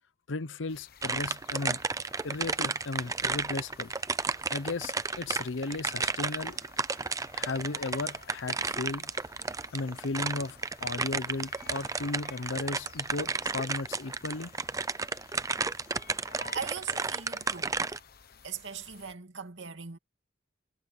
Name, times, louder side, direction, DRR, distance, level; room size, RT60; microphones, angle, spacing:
voice 1, 0.3-1.8 2.2-3.9 4.5-6.6 7.3-9.1 9.7-14.5, left 3 dB, 90° left, 0.8 m, -35 dB
sound 1, 0.7-19.1, left 6 dB, 55° left, 1.1 m, -54 dB
sound 2, 1.0-18.0, right 4 dB, 20° right, 0.6 m, -32 dB
voice 2, 16.5-17.8 18.4-20.0, right 6 dB, 70° right, 2.6 m, -39 dB
head